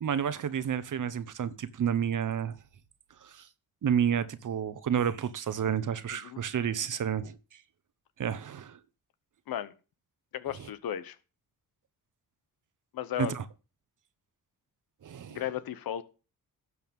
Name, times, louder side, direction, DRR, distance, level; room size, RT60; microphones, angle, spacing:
voice 1, 0.0-2.6 3.2-3.5 3.8-7.4 8.2-8.8 13.2-13.4 15.0-15.4, right 8 dB, 60° right, 1.0 m, -30 dB
voice 2, 6.1-6.4 9.5-9.7 10.3-11.2 12.9-13.4 15.3-16.0, left 10 dB, 75° left, 0.9 m, -35 dB
12.0 x 7.0 x 3.6 m
cardioid pair, 60°, 36 cm